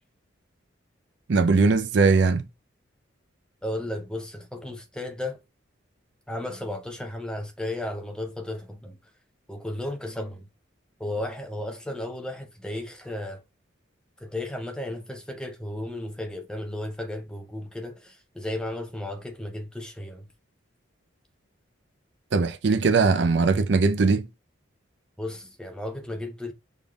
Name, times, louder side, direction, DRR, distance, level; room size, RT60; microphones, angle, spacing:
voice 1, 1.3-2.4 22.3-24.3, right 4 dB, 65° right, 0.5 m, -20 dB
voice 2, 3.6-5.4 6.3-9.0 9.5-10.4 11.0-13.4 14.2-20.3 25.2-26.5, left 1 dB, 5° left, 0.6 m, -34 dB
5.2 x 3.7 x 2.3 m
head